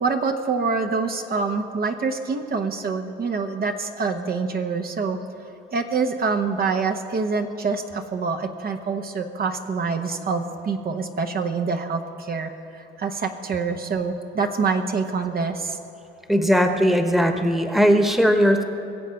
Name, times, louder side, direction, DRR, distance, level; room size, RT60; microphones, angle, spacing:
voice 1, 0.0-5.2 5.7-15.8, right 4 dB, 50° right, 5 dB, 1.0 m, -26 dB
voice 2, 16.3-18.6, equal, ahead, 5 dB, 1.2 m, -18 dB
22.0 x 7.6 x 5.7 m, 2.7 s
cardioid pair, 90°, 20 cm